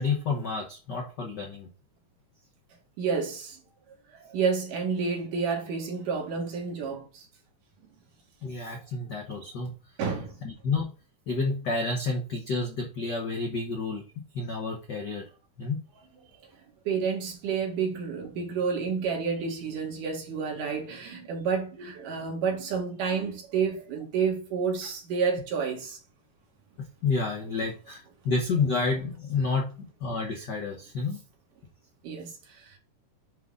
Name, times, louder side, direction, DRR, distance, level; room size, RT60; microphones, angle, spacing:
voice 1, 0.0-1.7 8.4-9.7 10.4-10.9 11.3-14.0 14.3-15.2 15.6-15.8 26.8-31.2, left 4 dB, 75° left, 0.9 m, -30 dB
voice 2, 3.0-3.6 4.1-7.3 10.0-10.4 16.9-26.0 32.0-32.7, right 5 dB, 85° right, 3.4 m, -30 dB
9.9 x 3.7 x 3.8 m
omnidirectional pair, 3.6 m